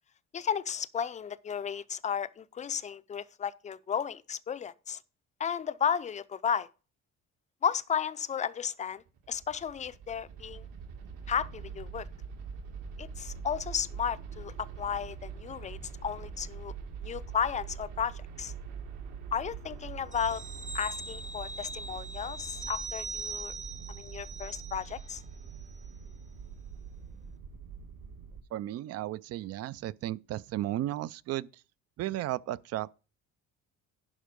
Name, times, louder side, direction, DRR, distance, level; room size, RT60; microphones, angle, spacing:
voice 1, 0.3-5.0 5.4-6.7 7.6-10.7 11.3-12.1 13.0-16.7 17.0-18.5 19.3-20.4 20.7-23.5 23.9-25.2, left 7 dB, 25° left, 0.5 m, -34 dB
sound 1, 9.0-28.4, right 6 dB, 80° right, 2.6 m, -43 dB
sound 2, 20.1-25.2 25.5-25.7, right 3 dB, 25° right, 0.7 m, -41 dB
voice 2, 28.5-31.6 32.0-32.9, right 14 dB, 55° right, 0.4 m, -34 dB
11.0 x 5.2 x 5.1 m
cardioid pair, 145°, 31 cm